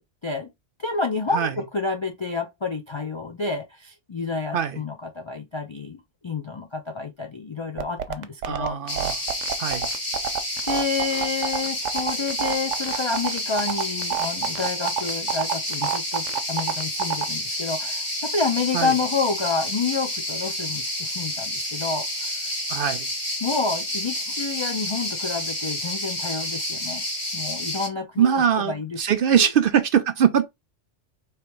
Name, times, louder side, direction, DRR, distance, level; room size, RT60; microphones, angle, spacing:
voice 1, 0.8-9.2 10.6-22.5 23.4-27.0 27.3-29.1 29.4-29.5, left 4 dB, 50° left, 0.3 m, -29 dB
sound 1, 7.8-17.2, right 9 dB, 90° right, 0.9 m, -27 dB
voice 2, 8.4-9.2 9.6-9.9 18.7-19.0 22.7-23.1 28.2-30.4, right 8 dB, 60° right, 0.6 m, -22 dB
sound 2, 8.9-27.9, left 1 dB, 25° left, 1.2 m, -29 dB
3.3 x 3.0 x 4.5 m
omnidirectional pair, 1.2 m